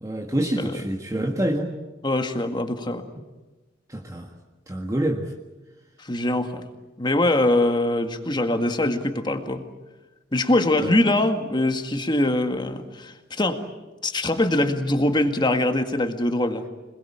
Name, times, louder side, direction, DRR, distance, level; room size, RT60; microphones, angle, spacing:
voice 1, 0.0-1.7 3.9-4.3 4.7-5.3 7.3-7.4 10.8-11.0, right 1 dB, 20° right, 1 dB, 1.6 m, -27 dB
voice 2, 2.0-3.1 6.0-6.7 7.0-9.7 10.3-13.6 14.0-16.7, left 1 dB, 25° left, 7 dB, 1.9 m, -23 dB
27.0 x 21.0 x 8.8 m, 1.1 s
head